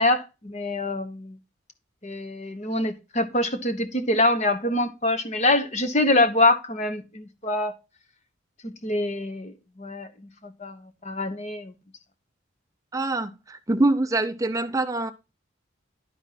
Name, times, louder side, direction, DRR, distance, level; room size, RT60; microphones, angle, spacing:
voice 1, 0.0-1.4 2.0-7.8 8.6-10.1 10.4-11.7, left 2 dB, 35° left, 1.1 m, -25 dB
voice 2, 12.9-15.1, right 2 dB, 15° right, 0.6 m, -24 dB
12.0 x 4.5 x 4.1 m
head